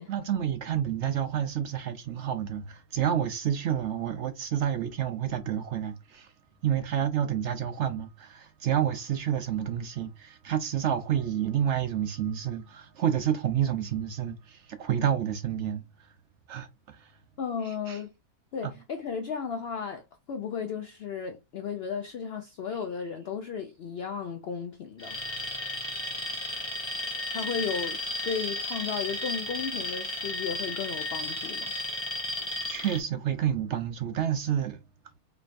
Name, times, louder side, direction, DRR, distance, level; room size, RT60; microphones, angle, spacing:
voice 1, 0.1-6.3 6.6-16.1 16.5-17.2 17.6-18.0 18.6-18.7 31.7-31.8 32.6-34.8, right 9 dB, 65° right, 0.7 m, -29 dB
voice 2, 17.4-18.1 18.5-25.2 27.3-28.0 28.2-31.7, left 6 dB, 70° left, 0.6 m, -34 dB
Alarm, 25.0-33.0, left 1 dB, 25° left, 0.8 m, -34 dB
4.5 x 3.1 x 2.5 m
omnidirectional pair, 1.6 m